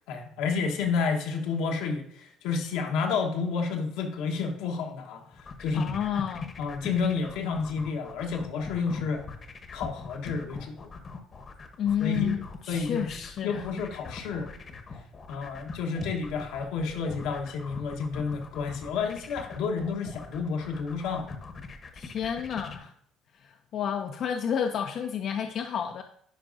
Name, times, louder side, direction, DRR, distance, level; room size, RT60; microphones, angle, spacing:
voice 1, 0.1-5.8 6.6-9.2 9.7-10.9 12.0-12.4 12.7-13.1 13.4-14.5 15.3-21.3, left 5 dB, 85° left, 2 dB, 1.1 m, -30 dB
sound 1, 5.3-22.8, left 4 dB, 35° left, 0.9 m, -42 dB
voice 2, 5.7-6.5 11.8-13.6 21.9-22.9 23.4-26.0, left 8 dB, 55° left, 5 dB, 0.5 m, -30 dB
10.0 x 4.7 x 2.6 m, 0.69 s
cardioid pair, 105°, 0 cm